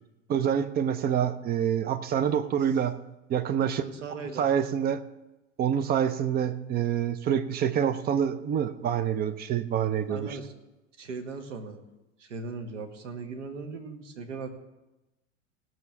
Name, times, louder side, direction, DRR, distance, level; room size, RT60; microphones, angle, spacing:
voice 1, 0.3-3.0 3.3-3.8 4.4-5.0 5.6-10.3, right 8 dB, 25° right, 12 dB, 0.6 m, -26 dB
voice 2, 3.6-4.5 10.1-10.6 11.0-11.8 12.2-14.5, right 4 dB, 65° right, 5 dB, 1.8 m, -38 dB
17.0 x 6.3 x 7.0 m, 1.0 s
figure-of-eight pair, 80°, 40 cm